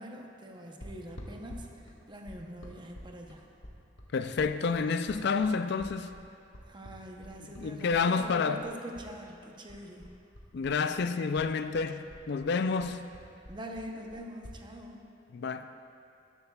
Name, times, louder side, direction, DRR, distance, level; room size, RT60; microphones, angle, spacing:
voice 1, 0.0-3.4 6.7-10.1 12.8-12.9 13.5-15.1, equal, 25° right, 0.8 m, -44 dB
sound 1, 0.8-9.1 9.4-11.1 11.3-14.6, equal, 80° left, 1.4 m, -48 dB
voice 2, 4.1-6.1 7.6-8.6 10.5-13.0 15.3-15.7, left 5 dB, 60° left, 0.4 m, -29 dB
13.5 x 11.0 x 2.3 m
head